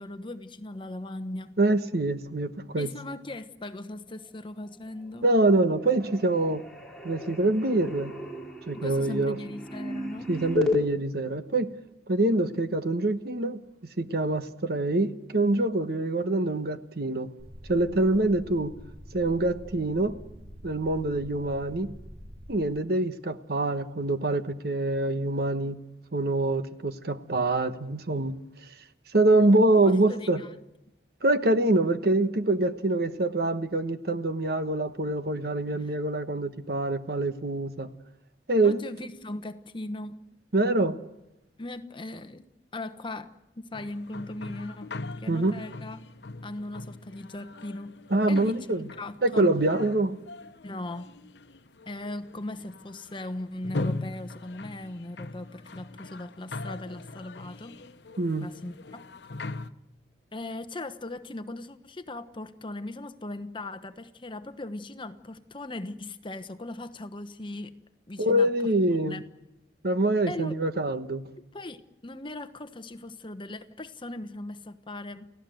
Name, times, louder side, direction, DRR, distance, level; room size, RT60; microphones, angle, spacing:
voice 1, 0.0-1.6 2.8-5.2 8.7-10.3 29.8-30.5 35.7-35.9 38.6-40.3 41.6-42.4 42.7-46.1 46.4-48.0 48.3-48.6 49.0-49.5 50.6-51.1 51.9-57.8 58.4-59.0 60.3-67.8 68.1-68.5 69.0-69.2 70.3-70.6 71.5-75.3, left 2 dB, 30° left, 10 dB, 1.1 m, -38 dB
voice 2, 1.6-2.9 5.2-6.6 7.0-8.1 8.7-9.4 10.3-11.7 12.1-13.6 14.0-17.3 17.7-18.7 19.1-20.2 20.6-21.9 22.5-25.8 26.1-28.4 29.1-30.4 31.2-37.9 38.5-38.8 40.5-41.0 45.3-45.5 48.1-48.8 49.2-50.2 58.2-58.5 68.2-69.2 69.8-71.2, right 2 dB, 60° right, 10 dB, 1.2 m, -25 dB
sound 1, 4.8-5.4 5.7-10.8, left 3 dB, 5° left, 3.8 m, -34 dB
sound 2, 17.4-22.6, equal, 40° right, 2.6 m, -46 dB
sound 3, 43.7-59.7, left 2 dB, 75° left, 1.0 m, -40 dB
29.5 x 16.5 x 7.8 m, 0.90 s
head